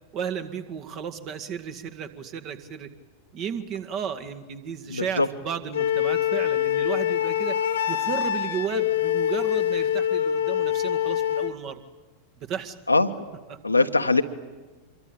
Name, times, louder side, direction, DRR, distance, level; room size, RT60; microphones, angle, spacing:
voice 1, 0.1-2.9 3.3-7.6 7.9-11.8 12.5-12.8 13.5-13.9, right 7 dB, 35° right, 8 dB, 2.0 m, -34 dB
voice 2, 4.9-5.3 12.9-13.1 13.6-14.2, left 3 dB, 85° left, 6 dB, 1.4 m, -21 dB
Wind instrument woodwind instrument, 5.7-11.6, left 11 dB, 60° left, 1.6 m, -25 dB
26.5 x 22.5 x 8.9 m, 1.3 s
figure-of-eight pair, 90°, 0 cm